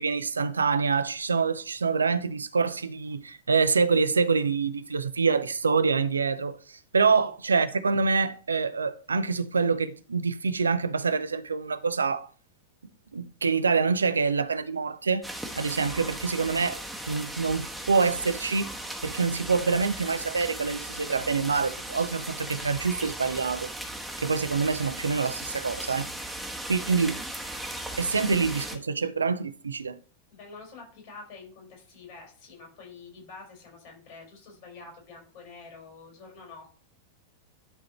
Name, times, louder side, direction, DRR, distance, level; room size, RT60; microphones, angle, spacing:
voice 1, 0.0-12.3 13.1-15.3 15.5-16.8 17.1-18.7 19.0-23.7 24.2-26.1 26.7-27.2 28.0-30.0, right 5 dB, 75° right, 0.5 m, -26 dB
sound 1, 15.2-28.8, right 1 dB, ahead, 1.1 m, -37 dB
voice 2, 30.3-36.7, left 4 dB, 50° left, 4.4 m, -47 dB
11.0 x 3.8 x 4.2 m
figure-of-eight pair, 90°, 0 cm